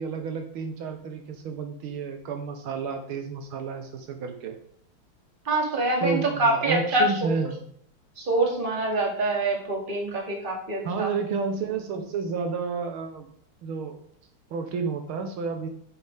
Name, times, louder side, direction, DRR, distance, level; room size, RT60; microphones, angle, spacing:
voice 1, 0.0-4.6 6.0-7.6 10.8-13.3 13.6-14.0 14.5-15.7, right 5 dB, 75° right, 5 dB, 1.7 m, -31 dB
voice 2, 5.5-7.3 8.2-11.1, right 2 dB, 25° right, 0 dB, 2.2 m, -25 dB
9.8 x 7.3 x 3.5 m, 0.63 s
omnidirectional pair, 2.4 m